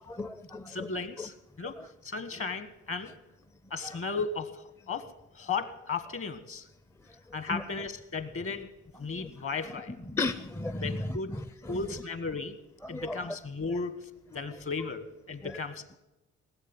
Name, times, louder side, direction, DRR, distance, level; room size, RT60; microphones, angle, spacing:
voice 1, 0.1-0.9 1.2-1.3 1.8-1.9 3.8-4.0 7.5-7.6 9.1-9.3 10.1-11.8 12.8-13.4 15.4-15.6, left 2 dB, 10° left, 12 dB, 0.5 m, -35 dB
voice 2, 0.7-1.8 2.0-3.1 3.7-6.7 7.3-8.7 9.0-9.9 10.8-11.3 11.7-12.5 12.9-14.1 14.3-16.0, left 4 dB, 45° left, 11 dB, 1.5 m, -35 dB
18.5 x 7.8 x 8.9 m, 0.95 s
cardioid pair, 90°, 30 cm